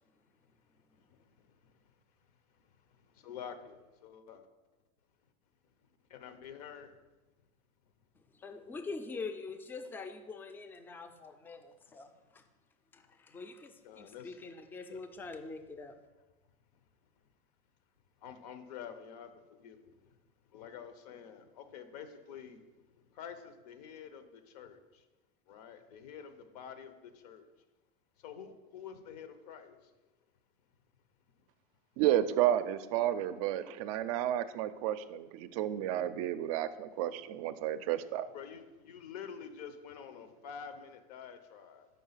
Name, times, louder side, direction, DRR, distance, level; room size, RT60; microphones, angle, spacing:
voice 1, 1.0-1.8 2.9-4.5 6.1-7.0 13.8-14.4 14.9-15.0 18.2-20.2 20.5-22.6 22.9-25.0 25.5-27.5 28.2-29.9 38.3-41.9, left 7 dB, 80° left, 9 dB, 0.8 m, -48 dB
voice 2, 8.3-12.4 12.9-16.0, left 4 dB, 10° left, 7 dB, 0.3 m, -44 dB
voice 3, 32.0-38.3, right 12 dB, 65° right, 13 dB, 0.4 m, -31 dB
5.3 x 3.7 x 5.6 m, 1.1 s
supercardioid pair, 150°, 20 cm